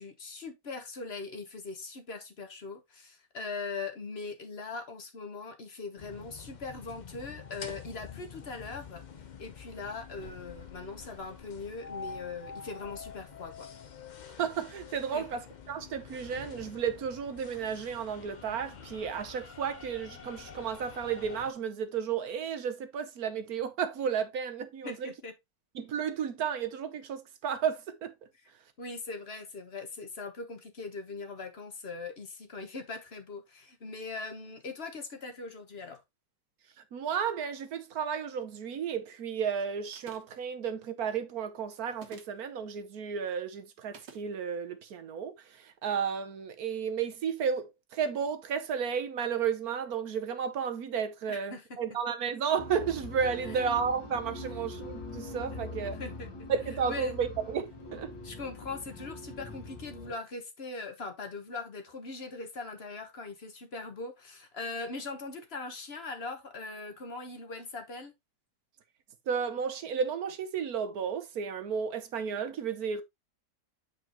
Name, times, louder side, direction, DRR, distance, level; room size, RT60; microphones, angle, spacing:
voice 1, 0.0-9.0 9.4-13.7 15.1-15.2 24.8-25.3 28.8-36.0 51.3-51.6 56.0-56.5 56.9-57.1 58.2-68.1, left 3 dB, 40° left, 1.3 m, -40 dB
sound 1, 6.0-21.5, left 6 dB, 60° left, 0.4 m, -47 dB
voice 2, 14.4-25.1 25.7-28.1 36.9-56.0 56.5-58.1 69.3-73.0, right 7 dB, 65° right, 1.3 m, -33 dB
sound 2, 39.9-40.4 41.9-42.4 43.9-44.3, right 6 dB, 85° right, 1.8 m, -50 dB
sound 3, 52.6-60.1, left 2 dB, 85° left, 2.2 m, -43 dB
8.3 x 4.7 x 3.0 m
omnidirectional pair, 1.8 m